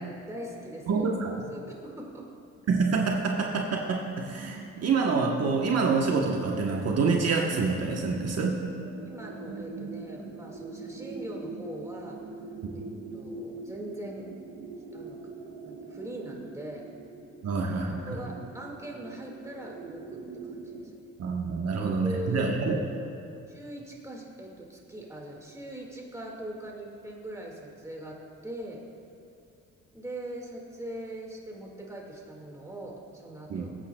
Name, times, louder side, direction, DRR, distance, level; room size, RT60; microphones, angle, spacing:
voice 1, 0.0-2.3 9.1-12.2 12.7-14.3 14.9-15.2 15.6-16.9 18.1-20.9 22.0-22.5 23.5-28.8 29.9-33.8, right 1 dB, 10° right, -1 dB, 2.0 m, -41 dB
voice 2, 0.9-1.3 2.7-8.6 12.6-12.7 17.4-18.1 21.2-22.8 33.5-33.7, right 4 dB, 55° right, 0 dB, 1.1 m, -27 dB
sound 1, 4.3-20.9, right 3 dB, 85° right, 1.6 m, -43 dB
20.0 x 8.8 x 2.3 m, 2.7 s
cardioid pair, 90°, 30 cm